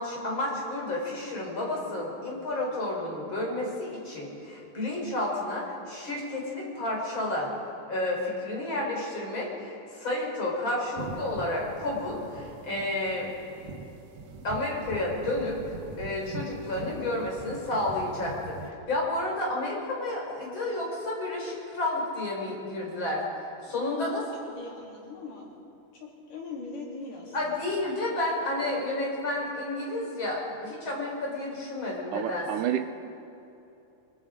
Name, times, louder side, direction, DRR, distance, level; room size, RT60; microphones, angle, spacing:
voice 1, 0.0-7.5 7.9-13.3 14.4-15.6 16.0-23.2 23.6-24.2 27.3-32.5, left 1 dB, 35° left, -2 dB, 5.2 m, -31 dB
sound 1, 11.0-18.7, right 3 dB, 60° right, 2.2 m, -42 dB
voice 2, 23.8-25.5 25.9-27.7, left 3 dB, 80° left, -4 dB, 5.3 m, -41 dB
voice 3, 32.1-32.9, right 11 dB, 80° right, 9 dB, 2.3 m, -29 dB
24.0 x 22.5 x 5.2 m, 2.8 s
omnidirectional pair, 3.7 m